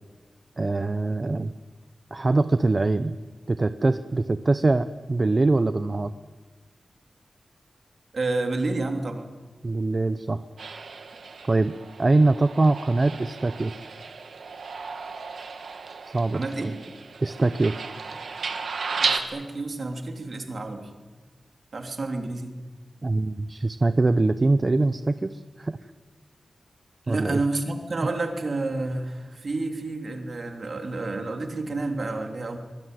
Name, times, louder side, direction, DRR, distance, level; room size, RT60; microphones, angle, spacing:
voice 1, 0.6-1.5 2.1-3.2 3.5-6.1 9.6-10.4 11.5-13.8 16.0-16.7 17.2-17.9 23.0-25.8 27.1-27.4, right 2 dB, 30° right, 11 dB, 0.7 m, -23 dB
voice 2, 8.1-9.3 16.3-16.8 19.0-20.9 21.7-22.5 27.1-32.6, right 2 dB, 50° right, 4 dB, 3.2 m, -30 dB
sound 1, 10.6-19.2, right 5 dB, 85° right, 2.3 m, -34 dB
24.0 x 21.5 x 9.4 m, 1.3 s
wide cardioid pair, 145°, 0 cm